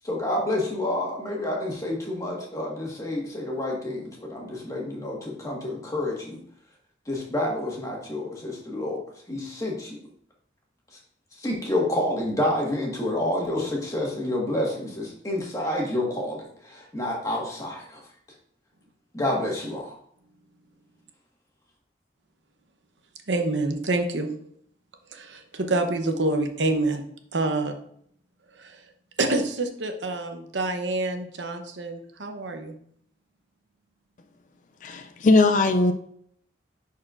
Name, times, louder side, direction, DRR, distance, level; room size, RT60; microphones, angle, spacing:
voice 1, 0.0-6.4 7.1-9.0 9.3-10.0 11.4-18.0 19.1-19.9, left 1 dB, 20° left, -2 dB, 1.5 m, -29 dB
voice 2, 23.3-24.3 25.1-27.0 27.3-27.7 28.6-28.8 29.2-32.7, right 2 dB, 80° right, 5 dB, 0.9 m, -27 dB
voice 3, 34.8-35.9, left 3 dB, 45° left, 7 dB, 0.4 m, -19 dB
10.5 x 4.2 x 2.5 m, 0.65 s
head